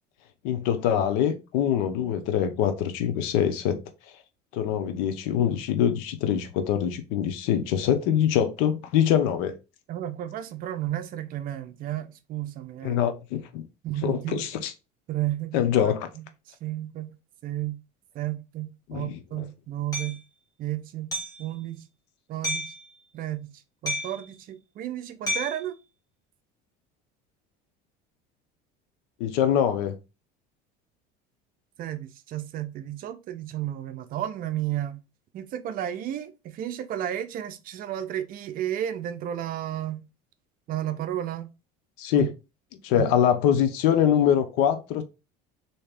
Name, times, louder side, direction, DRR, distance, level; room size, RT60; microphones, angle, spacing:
voice 1, 0.4-3.8 4.5-9.6 12.8-13.7 14.0-14.7 15.5-16.1 18.9-19.5 29.2-30.0 42.0-42.3 42.8-45.0, left 9 dB, 80° left, 0.7 m, -24 dB
voice 2, 9.9-13.0 13.8-14.4 15.1-15.9 16.2-16.3 16.6-17.1 17.4-17.8 18.1-20.2 20.6-21.1 21.4-21.8 22.3-22.6 23.1-23.5 23.8-25.7 31.8-35.0 35.3-40.0 40.7-41.5 42.1-42.3 42.9-43.1, right 12 dB, 45° right, 0.6 m, -32 dB
Hammer, 19.9-20.1 21.1-21.4 22.4-22.8 23.9-24.3 25.3-25.6, left 1 dB, 20° left, 1.2 m, -30 dB
3.2 x 2.8 x 3.4 m
cardioid pair, 125°, 20 cm